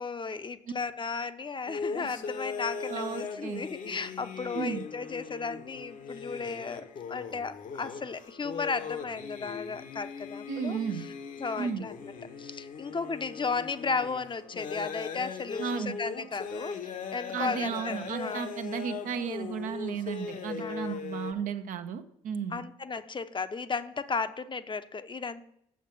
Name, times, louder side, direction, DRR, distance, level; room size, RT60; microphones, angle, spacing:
voice 1, 0.0-11.1 11.4-12.1 12.4-18.5 20.6-21.0 22.5-25.4, left 4 dB, 35° left, 12 dB, 0.7 m, -35 dB
sound 1, 1.7-21.3, left 5 dB, 60° left, 1.1 m, -39 dB
voice 2, 2.9-3.6 4.5-4.8 10.5-11.0 11.5-11.8 15.6-15.9 17.3-22.6, right 7 dB, 65° right, 8 dB, 0.8 m, -34 dB
7.3 x 7.2 x 6.0 m, 0.75 s
hypercardioid pair, 45°, 15 cm